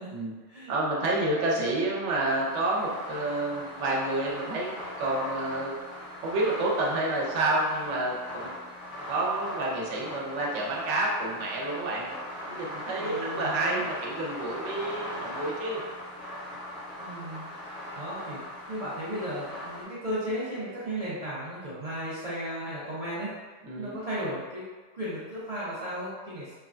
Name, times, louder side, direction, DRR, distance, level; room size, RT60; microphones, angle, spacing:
voice 1, 0.7-5.8 6.2-8.6 9.1-12.1 12.4-15.8 23.6-23.9, right 2 dB, 75° right, -4 dB, 1.0 m, -29 dB
sound 1, 2.3-19.8, left 1 dB, 45° left, 0.9 m, -40 dB
voice 2, 12.9-13.8 17.0-17.4 18.0-18.4 18.7-23.3 23.8-24.7 24.9-26.5, equal, 50° right, -9 dB, 0.4 m, -35 dB
3.2 x 2.2 x 2.4 m, 1.4 s
omnidirectional pair, 1.3 m